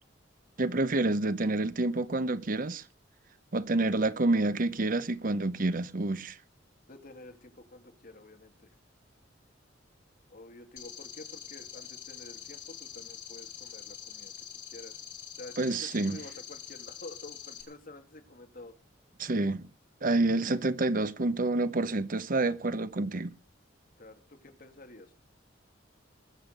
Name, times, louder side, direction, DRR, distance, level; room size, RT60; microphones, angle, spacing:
voice 1, 0.6-2.8 3.5-6.4 15.6-16.2 19.2-19.7 20.0-23.3, right 2 dB, 45° right, 0.8 m, -28 dB
voice 2, 6.9-8.7 10.3-14.3 14.7-14.9 15.3-18.7 24.0-25.1, left 2 dB, 50° left, 2.4 m, -49 dB
sound 1, 10.8-17.6, left 9 dB, 80° left, 3.5 m, -45 dB
20.5 x 7.3 x 6.6 m
head